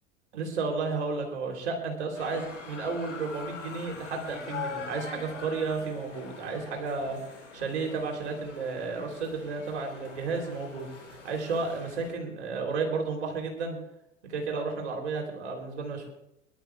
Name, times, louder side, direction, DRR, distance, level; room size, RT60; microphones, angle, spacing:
voice 1, 0.3-13.8 14.3-16.1, right 4 dB, 65° right, 2 dB, 3.4 m, -32 dB
sound 1, 2.2-12.1, left 5 dB, 80° left, 2.1 m, -43 dB
24.5 x 11.5 x 2.3 m, 0.83 s
figure-of-eight pair, 80°, 36 cm